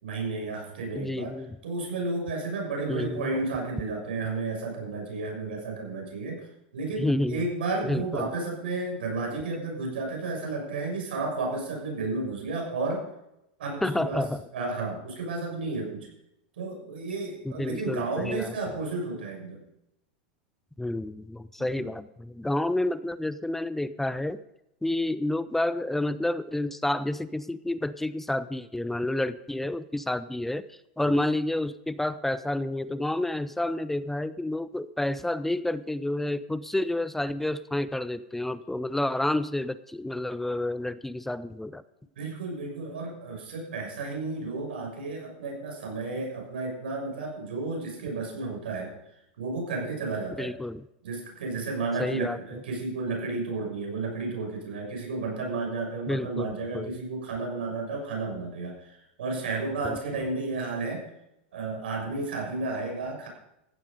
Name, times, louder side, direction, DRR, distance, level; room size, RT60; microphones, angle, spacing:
voice 1, 0.0-6.5 6.7-13.1 13.6-16.1 16.6-19.6 21.7-21.9 31.0-31.1 42.2-48.9 49.4-50.5 51.0-61.1 61.5-63.3, right 3 dB, 90° right, 1 dB, 6.5 m, -32 dB
voice 2, 0.9-1.6 2.9-3.3 7.0-7.4 7.8-8.3 13.8-14.4 17.4-18.6 20.8-24.4 24.8-41.8 50.4-50.9 52.0-52.4 56.1-57.0 59.8-60.0, left 1 dB, 5° left, 15 dB, 0.4 m, -29 dB
15.0 x 11.0 x 5.3 m, 0.84 s
supercardioid pair, 130°, 5 cm